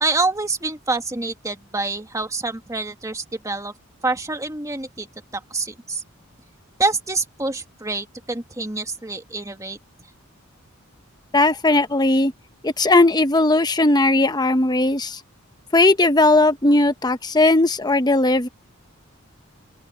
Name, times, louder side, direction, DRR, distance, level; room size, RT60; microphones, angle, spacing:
voice 1, 0.0-3.7 4.0-5.1 5.3-6.0 6.8-9.8, right 3 dB, 15° right, 1.9 m, -26 dB
voice 2, 11.3-12.3 12.6-15.2 15.7-18.5, left 2 dB, 20° left, 1.0 m, -17 dB
open air
head